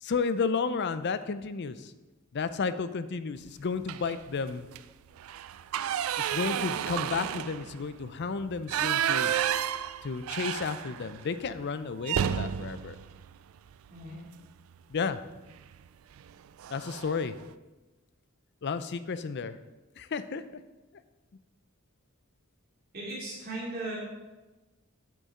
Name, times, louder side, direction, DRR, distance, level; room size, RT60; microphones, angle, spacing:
voice 1, 0.0-1.9 2.3-4.7 6.2-9.3 10.0-13.0 14.9-15.2 16.7-17.3 18.6-19.6 20.0-20.4, left 5 dB, 55° left, 12 dB, 0.5 m, -32 dB
sound 1, 3.8-4.3 4.6-4.8 5.2-11.2 11.5-11.6 12.0-14.2 15.5-15.8 16.2-16.3 16.6-17.2, right 9 dB, 80° right, 0.3 m, -31 dB
voice 2, 22.9-24.0, right 2 dB, 45° right, -6 dB, 2.8 m, -37 dB
8.5 x 8.3 x 3.7 m, 1.1 s
head